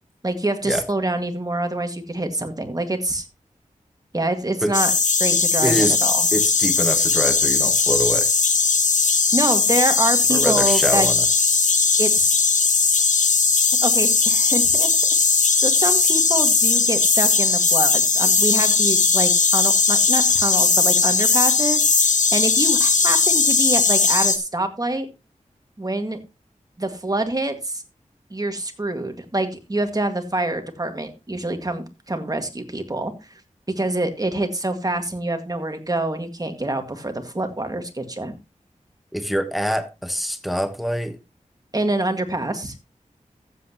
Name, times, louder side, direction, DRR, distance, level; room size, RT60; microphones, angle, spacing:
voice 1, 0.2-3.2 4.1-4.9 5.2-6.3 9.3-11.1 12.0-12.3 13.8-14.9 15.6-25.1 25.8-26.2 26.8-27.8 28.3-33.1 33.8-38.3 41.7-42.7, right 2 dB, 30° right, 1.9 m, -26 dB
sound 1, 4.7-24.4, left 4 dB, 70° left, 1.2 m, -18 dB
voice 2, 5.6-6.0 6.3-8.3 10.3-11.2 39.1-41.2, equal, ahead, 1.2 m, -24 dB
14.5 x 7.9 x 2.9 m
wide cardioid pair, 65°, 13 cm